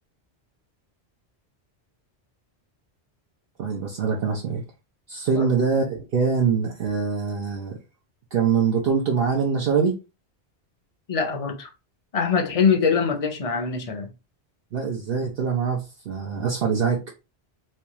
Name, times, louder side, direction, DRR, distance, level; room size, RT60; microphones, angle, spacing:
voice 1, 3.6-4.6 5.1-7.8 8.3-10.0 14.7-17.0, right 6 dB, 65° right, 0.9 m, -24 dB
voice 2, 11.1-11.7 12.1-14.1, left 6 dB, 40° left, 0.7 m, -23 dB
4.3 x 2.3 x 2.9 m
omnidirectional pair, 1.1 m